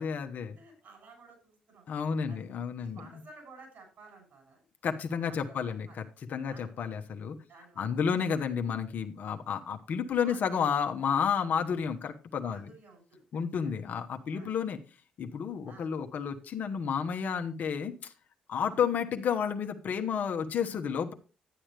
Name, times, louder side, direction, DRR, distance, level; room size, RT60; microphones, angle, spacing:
voice 1, 0.0-0.6 1.9-3.1 4.8-7.4 7.8-12.7 13.3-14.8 15.2-18.1 18.5-21.1, left 7 dB, 60° left, 6 dB, 1.2 m, -31 dB
voice 2, 0.6-1.9 2.3-2.5 2.8-4.6 5.3-6.0 6.5-6.7 7.5-8.2 10.2-10.7 12.4-13.2 13.6-13.7 14.3-14.5 15.7-15.9 18.7-18.8, right 3 dB, 65° right, 4 dB, 7.1 m, -53 dB
11.5 x 8.8 x 3.4 m, 0.33 s
hypercardioid pair, 45°, 3 cm